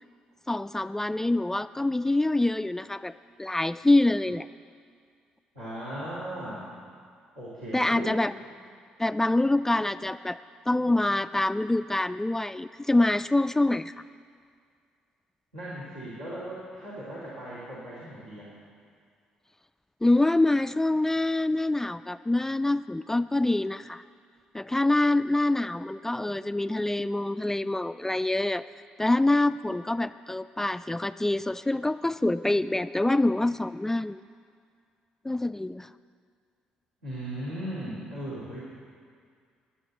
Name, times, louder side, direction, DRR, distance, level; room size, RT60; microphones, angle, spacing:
voice 1, 0.5-3.1 3.4-4.5 7.7-8.3 9.0-10.4 10.7-13.9 20.0-24.0 24.5-28.6 29.0-34.2 35.2-35.9, left 2 dB, 10° left, 13 dB, 0.3 m, -25 dB
voice 2, 5.5-6.7 7.3-8.2 15.5-18.5 37.0-38.6, right 1 dB, 85° right, -11 dB, 2.7 m, -37 dB
21.0 x 9.2 x 4.1 m, 2.2 s
figure-of-eight pair, 45°, 4 cm